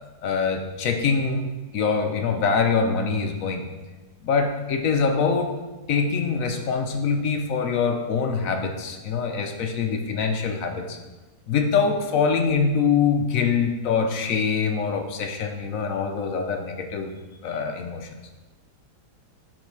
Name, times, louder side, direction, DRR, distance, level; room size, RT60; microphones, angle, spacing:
voice 1, 0.2-3.6 4.2-5.5 5.9-11.0 11.5-17.1 17.4-18.1, left 5 dB, 60° left, 5 dB, 1.0 m, -24 dB
7.5 x 4.1 x 5.4 m, 1.2 s
omnidirectional pair, 1.8 m